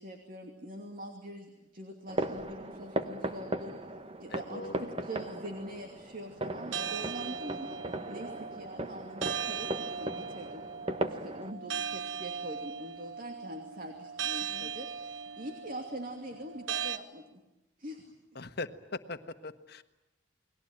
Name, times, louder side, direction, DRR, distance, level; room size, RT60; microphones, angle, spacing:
voice 1, 0.0-3.7 4.2-7.8 8.1-10.7 11.0-17.4 17.8-18.1, right 1 dB, 50° right, 4 dB, 2.7 m, -44 dB
sound 1, 2.1-11.5, right 1 dB, 30° right, 1.4 m, -37 dB
voice 2, 4.3-4.9 14.5-14.7 18.3-19.8, left 2 dB, 60° left, 10 dB, 1.4 m, -41 dB
sound 2, 6.7-17.0, right 7 dB, 80° right, 1.2 m, -38 dB
29.5 x 21.0 x 9.0 m, 0.94 s
head